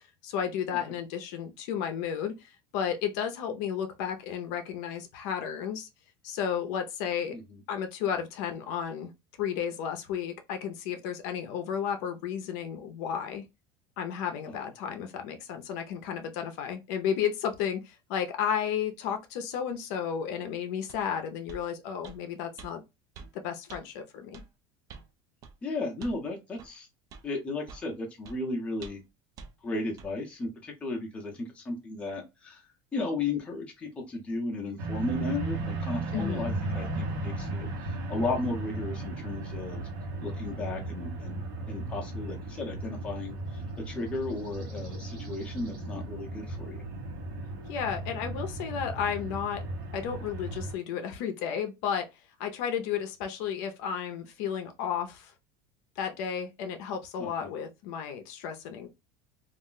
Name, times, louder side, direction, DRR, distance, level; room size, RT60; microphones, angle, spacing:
voice 1, 0.0-5.9 6.2-7.3 7.7-9.1 9.4-13.4 14.0-22.8 23.3-24.4 36.1-36.6 47.7-49.6 49.9-52.1 52.4-55.3 56.0-58.9, left 8 dB, 60° left, 0.6 m, -33 dB
voice 2, 7.3-7.6 14.5-14.6 25.6-26.9 27.2-29.0 29.6-32.6 32.9-39.8 40.2-41.4 41.7-46.8 57.2-57.5, left 2 dB, 10° left, 0.6 m, -35 dB
sound 1, 20.9-21.0 21.5-21.7 22.0-22.2 22.6-22.7 23.1-23.3 23.7-23.8 24.3-24.5 24.9-25.1 25.4-25.6 26.0-26.2 26.6-26.7 27.1-27.3 27.7-27.9 28.2-28.4 28.8-29.1 29.4-29.5 30.0-30.1, right 5 dB, 30° right, 0.4 m, -46 dB
sound 2, 34.8-50.7, right 2 dB, 80° right, 1.0 m, -36 dB
2.4 x 2.1 x 3.7 m
cardioid pair, 175°, 11 cm